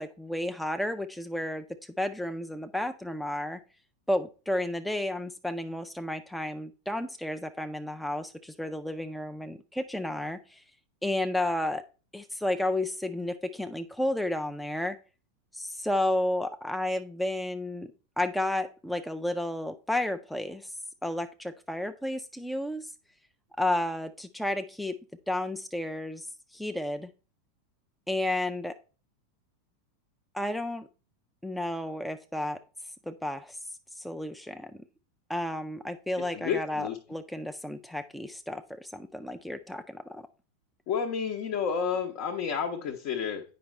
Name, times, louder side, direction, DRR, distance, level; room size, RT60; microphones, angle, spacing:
voice 1, 0.0-3.6 4.1-10.6 11.0-11.8 12.1-15.0 15.5-17.9 18.2-22.9 23.6-24.9 25.3-26.3 26.5-27.1 28.1-28.7 30.3-30.9 31.4-32.6 33.1-33.6 33.9-34.8 35.3-40.2, left 1 dB, 5° left, 7 dB, 0.4 m, -32 dB
voice 2, 36.3-37.0 40.9-43.4, left 6 dB, 50° left, 1 dB, 0.8 m, -30 dB
8.6 x 5.3 x 3.2 m, 0.35 s
figure-of-eight pair, 85°, 0 cm